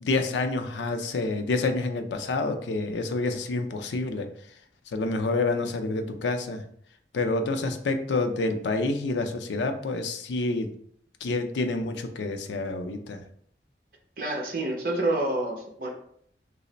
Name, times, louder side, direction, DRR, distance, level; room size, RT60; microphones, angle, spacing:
voice 1, 0.0-4.3 4.9-6.6 7.1-10.7 11.2-13.2, left 3 dB, 85° left, 7 dB, 0.4 m, -28 dB
voice 2, 14.2-15.9, right 2 dB, 50° right, 1 dB, 0.7 m, -28 dB
3.1 x 2.0 x 3.9 m, 0.65 s
head